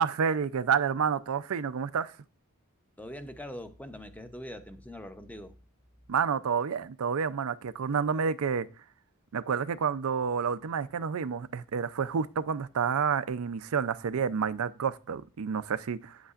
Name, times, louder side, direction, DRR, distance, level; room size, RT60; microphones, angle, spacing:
voice 1, 0.0-2.1 6.1-8.7 9.3-16.2, right 6 dB, 85° right, 0.5 m, -29 dB
voice 2, 3.0-5.5, equal, 5° left, 0.6 m, -42 dB
8.7 x 8.1 x 2.4 m
head